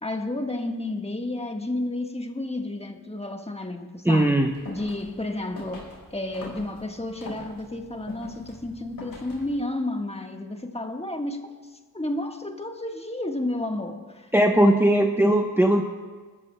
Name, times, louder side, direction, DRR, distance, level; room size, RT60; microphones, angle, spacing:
voice 1, 0.0-4.4 4.7-11.5 11.9-14.3, left 1 dB, 15° left, 1.4 m, -31 dB
voice 2, 4.0-4.5 14.3-15.8, right 1 dB, 5° right, 0.9 m, -19 dB
sound 1, 4.4-9.6, left 2 dB, 80° left, 4.1 m, -43 dB
20.0 x 13.5 x 2.2 m
cardioid pair, 40°, 35 cm